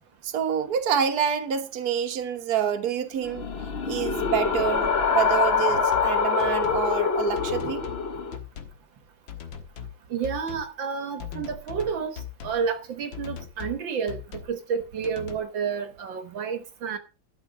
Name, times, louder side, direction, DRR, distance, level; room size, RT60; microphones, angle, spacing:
voice 1, 0.2-3.4 3.8-7.8, right 8 dB, 55° right, 1.6 m, -27 dB
sound 1, 3.2-8.4, left 5 dB, 40° left, 1.1 m, -25 dB
sound 2, 5.7-6.1 6.4-6.9 7.4-8.0 8.3-8.8 9.3-10.0 10.2-10.7 11.2-12.6 13.1-13.8 14.1-14.6 15.0-15.4, left 8 dB, 70° left, 2.2 m, -39 dB
voice 2, 10.1-14.2 14.5-17.0, right 6 dB, 70° right, 1.8 m, -30 dB
12.0 x 7.0 x 6.2 m
omnidirectional pair, 2.2 m